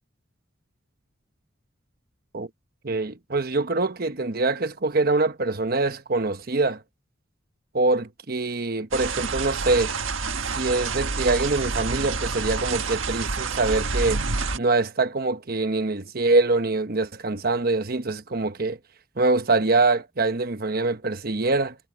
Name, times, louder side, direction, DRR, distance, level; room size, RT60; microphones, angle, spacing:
voice 1, 2.8-6.8 7.7-9.9 10.5-14.2 14.5-18.8 19.2-21.8, right 3 dB, 50° right, 1.1 m, -24 dB
sound 1, 8.9-14.6, right 4 dB, 90° right, 1.6 m, -28 dB
head